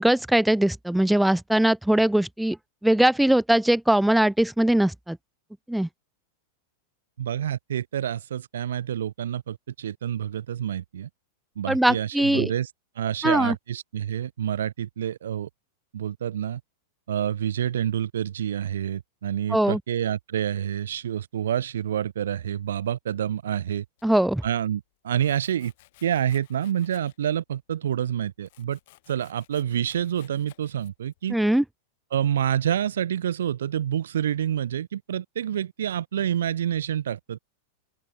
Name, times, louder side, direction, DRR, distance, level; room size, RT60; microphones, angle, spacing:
voice 1, 0.0-2.6 2.8-5.2 5.7-5.9 11.7-12.5 13.2-13.5 19.5-19.8 24.0-24.4 31.3-31.6, right 1 dB, 5° right, 0.3 m, -21 dB
voice 2, 7.2-11.1 11.6-12.7 13.0-15.5 15.9-16.6 17.1-23.8 24.4-25.7 26.0-28.8 29.1-31.4 32.1-37.4, right 10 dB, 80° right, 0.6 m, -28 dB
Domestic sounds home sounds, 24.0-24.6 25.1-27.4 27.7-31.2, left 19 dB, 65° left, 2.7 m, -57 dB
open air
hypercardioid pair, 105°, 0 cm